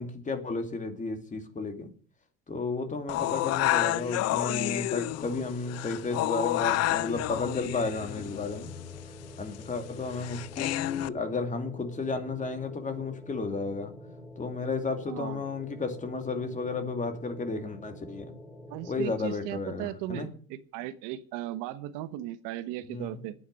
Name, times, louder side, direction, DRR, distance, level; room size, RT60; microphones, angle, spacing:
voice 1, 0.0-1.9 2.5-8.7 9.4-13.9 14.4-18.3 18.9-20.3 22.9-23.2, left 3 dB, 25° left, 2.6 m, -33 dB
sound 1, 3.1-11.1, left 16 dB, 50° left, 0.5 m, -30 dB
sound 2, 3.2-19.1, equal, 5° left, 2.6 m, -48 dB
voice 2, 15.1-15.4 18.7-23.3, right 14 dB, 80° right, 1.3 m, -37 dB
9.8 x 9.5 x 9.5 m
cardioid pair, 115°, 32 cm